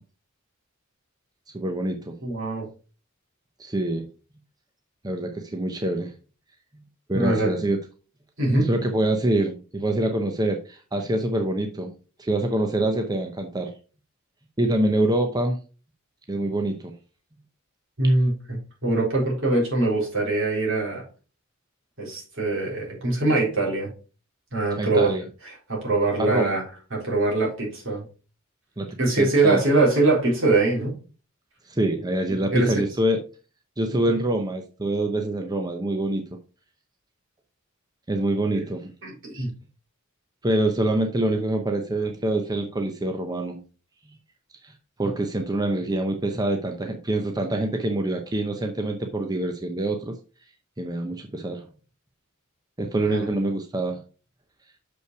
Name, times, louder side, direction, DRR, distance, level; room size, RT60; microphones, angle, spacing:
voice 1, 1.5-2.1 3.6-4.1 5.0-6.1 7.1-7.8 8.6-11.9 12.2-13.7 14.6-15.6 16.3-16.9 24.8-25.2 26.2-26.6 28.8-28.9 29.2-29.6 31.7-33.2 33.8-36.2 38.1-38.9 40.4-43.6 44.6-44.7 45.0-50.1 50.8-51.7 52.8-54.0, right 1 dB, 20° right, 4 dB, 0.7 m, -25 dB
voice 2, 2.2-2.6 7.1-7.5 8.4-8.7 18.0-21.0 22.0-23.9 24.5-25.1 25.4-26.6 26.9-28.0 29.0-31.0 32.5-32.8 38.5-38.6 39.0-39.5 53.1-53.2, right 2 dB, 65° right, -3 dB, 4.0 m, -23 dB
6.4 x 5.6 x 4.5 m, 0.36 s
head